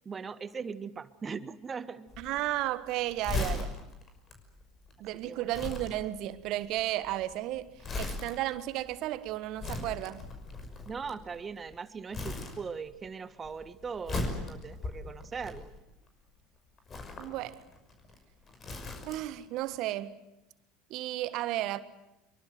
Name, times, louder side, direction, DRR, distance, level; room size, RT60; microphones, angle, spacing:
voice 1, 0.0-2.1 5.3-5.5 10.8-15.7, right 5 dB, 25° right, 1.5 m, -40 dB
Crumpling crinkling, 2.1-11.7 12.1-13.1 13.3-16.1 16.8-19.4 19.7-19.9, left 2 dB, 30° left, 5.8 m, -38 dB
voice 2, 2.2-3.7 5.0-10.2 17.2-17.6 19.1-20.2 20.9-21.8, right 15 dB, 50° right, 1.5 m, -33 dB
25.5 x 23.5 x 7.8 m
figure-of-eight pair, 70°, 0 cm